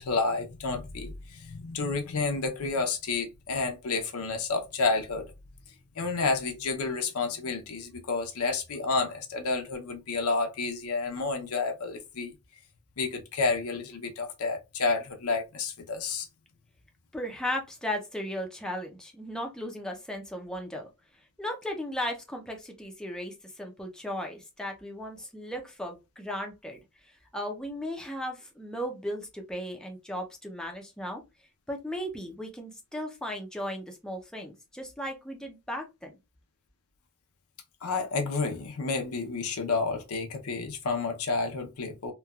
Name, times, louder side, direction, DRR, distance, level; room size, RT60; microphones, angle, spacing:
voice 1, 0.0-5.3 6.0-12.3 13.0-16.3 37.8-42.1, left 4 dB, 85° left, 0.6 m, -30 dB
voice 2, 17.1-20.9 21.4-26.8 27.3-31.2 31.7-36.1, equal, 5° left, 0.5 m, -36 dB
3.1 x 2.2 x 2.3 m
head